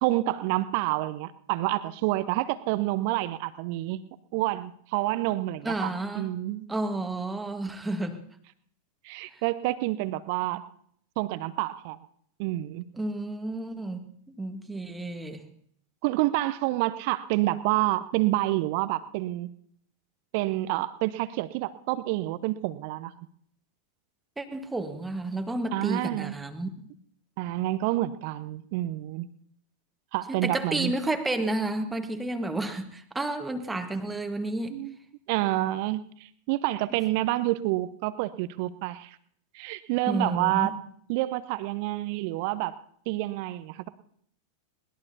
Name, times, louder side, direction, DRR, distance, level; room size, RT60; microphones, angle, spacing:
voice 1, 0.0-4.0 4.3-6.7 9.0-10.6 11.2-12.0 12.4-12.9 16.0-19.5 20.3-23.1 25.7-26.3 27.4-29.3 30.1-30.9 34.7-34.9 35.3-39.2 39.5-40.7 41.1-42.7 43.1-43.9, right 17 dB, 45° right, 14 dB, 0.7 m, -28 dB
voice 2, 5.6-6.3 6.7-8.2 13.0-14.1 14.4-15.4 24.4-26.7 30.3-34.8 40.1-40.7, right 2 dB, 10° right, 6 dB, 1.6 m, -31 dB
21.5 x 19.5 x 2.8 m, 0.65 s
figure-of-eight pair, 90°, 0 cm